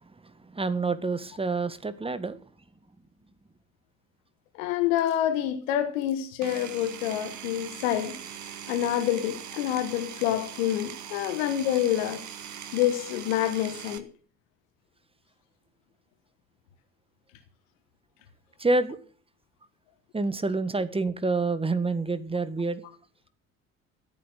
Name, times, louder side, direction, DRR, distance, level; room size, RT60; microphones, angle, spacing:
voice 1, 0.5-2.4 18.6-19.0 20.1-22.8, right 3 dB, 15° right, 1.6 m, -27 dB
voice 2, 4.5-8.2 8.5-12.2 12.7-14.1, left 11 dB, 70° left, 1.3 m, -27 dB
Power tool, 6.4-14.0, right 9 dB, 45° right, 1.8 m, -41 dB
14.5 x 8.6 x 7.5 m
figure-of-eight pair, 55°, 40 cm